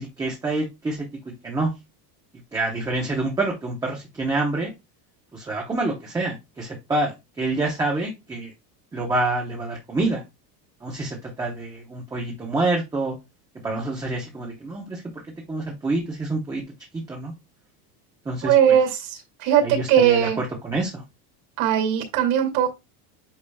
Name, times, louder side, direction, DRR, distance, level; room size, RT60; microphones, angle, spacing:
voice 1, 0.0-1.7 2.5-4.7 5.3-8.5 8.9-10.2 10.8-13.2 13.6-15.0 15.5-16.6 16.9-17.3 18.2-18.5 19.6-21.0, right 2 dB, 10° right, -1 dB, 0.7 m, -27 dB
voice 2, 18.4-20.4 21.6-22.7, right 9 dB, 60° right, 4 dB, 2.4 m, -19 dB
8.7 x 4.9 x 2.3 m, 0.23 s
cardioid pair, 170°, 47 cm